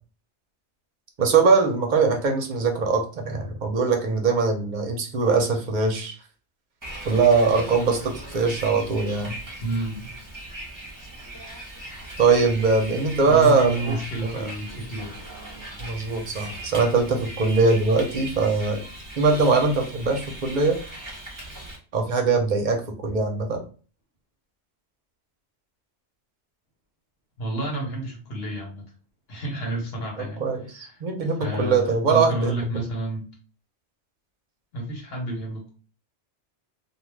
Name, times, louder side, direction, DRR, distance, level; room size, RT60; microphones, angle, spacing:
voice 1, 1.2-6.2 7.0-9.4 12.2-14.0 14.2-14.5 15.8-18.8 19.2-20.8 21.9-23.6 30.4-32.8, right 4 dB, 55° right, 3 dB, 0.6 m, -22 dB
Bus, 6.8-21.8, right 1 dB, 20° right, 0.7 m, -38 dB
voice 2, 9.6-10.2 13.2-15.2 27.4-28.8 29.3-31.0 31.4-33.2 34.7-35.7, right 2 dB, 65° left, 0 dB, 1.0 m, -30 dB
2.3 x 2.3 x 3.1 m, 0.38 s
omnidirectional pair, 1.2 m